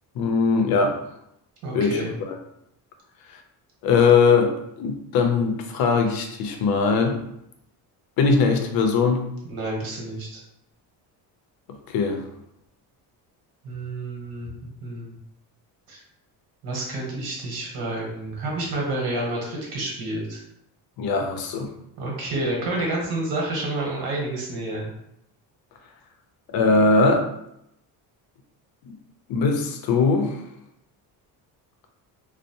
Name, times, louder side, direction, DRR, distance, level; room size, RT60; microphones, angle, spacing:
voice 1, 0.2-1.0 1.7-2.0 2.3-2.4 3.8-7.2 8.2-9.3 11.9-12.2 21.0-21.7 26.5-27.3 28.9-29.0 29.3-30.4, left 4 dB, 65° left, 5 dB, 0.5 m, -20 dB
voice 2, 1.6-2.1 9.4-10.4 13.6-14.5 14.8-15.1 15.9-16.0 16.6-20.4 22.0-24.9, right 2 dB, 65° right, -2 dB, 1.0 m, -29 dB
2.5 x 2.0 x 2.8 m, 0.79 s
cardioid pair, 130°, 40 cm